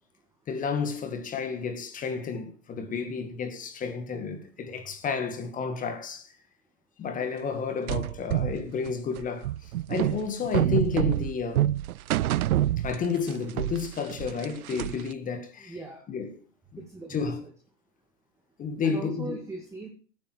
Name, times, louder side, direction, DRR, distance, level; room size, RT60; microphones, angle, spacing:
voice 1, 0.5-6.3 7.0-9.5 9.9-11.7 12.8-15.7 16.1-16.4 16.7-16.8 17.1-17.4 18.6-19.4, left 5 dB, 15° left, 1.9 m, -31 dB
sound 1, 7.9-13.3 13.6-15.1, right 13 dB, 65° right, 0.6 m, -27 dB
voice 2, 15.6-16.1 16.8-17.3 18.8-19.9, right 2 dB, 5° right, 2.2 m, -39 dB
17.5 x 9.7 x 4.6 m
hypercardioid pair, 135°, 48 cm